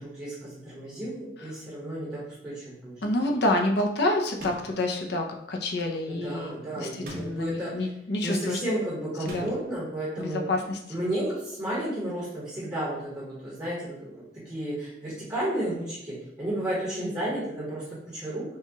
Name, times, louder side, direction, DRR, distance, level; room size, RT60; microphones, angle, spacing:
voice 1, 0.0-2.9 6.1-7.9 8.2-10.4 10.9-18.4, right 1 dB, 20° right, -8 dB, 1.2 m, -32 dB
voice 2, 3.0-8.6 9.2-9.5 10.2-10.8, left 1 dB, 60° left, 2 dB, 0.6 m, -28 dB
sound 1, 4.4-4.9 7.0-7.6 9.3-9.8, equal, 55° right, 0.9 m, -41 dB
5.6 x 2.3 x 2.9 m, 0.81 s
head